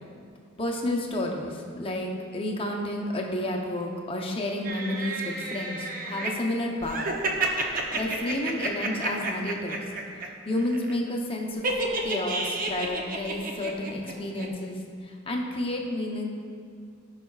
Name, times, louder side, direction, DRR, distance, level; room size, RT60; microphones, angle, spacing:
voice 1, 0.6-7.1 7.6-9.8 10.5-11.7 12.0-16.3, left 1 dB, 30° left, 0 dB, 0.8 m, -31 dB
sound 1, 4.6-6.3 6.8-10.3 10.5-10.9 11.6-14.1 14.4-14.5, right 2 dB, 45° right, 0.7 m, -30 dB
15.5 x 5.7 x 2.4 m, 2.2 s
head